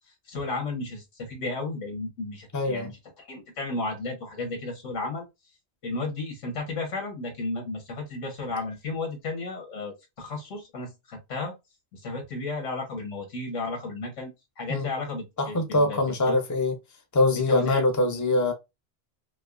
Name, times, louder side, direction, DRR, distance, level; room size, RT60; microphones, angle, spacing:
voice 1, 0.3-2.9 3.2-5.2 5.8-11.5 11.9-14.3 14.6-16.4 17.4-17.8 18.1-18.2, left 3 dB, 85° left, 1.6 m, -33 dB
voice 2, 2.5-2.9 14.7-14.9 15.4-16.7 17.1-18.5, left 2 dB, 20° left, 0.5 m, -23 dB
5.0 x 2.0 x 2.4 m
omnidirectional pair, 1.2 m